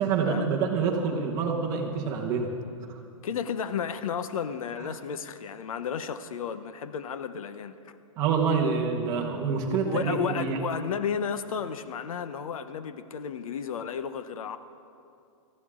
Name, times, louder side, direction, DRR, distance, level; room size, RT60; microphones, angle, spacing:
voice 1, 0.0-2.5 8.2-10.6, right 5 dB, 20° right, 0 dB, 1.2 m, -26 dB
voice 2, 3.2-7.8 9.7-14.6, left 7 dB, 90° left, 12 dB, 0.8 m, -33 dB
18.5 x 14.5 x 3.7 m, 2.6 s
supercardioid pair, 175°, 17 cm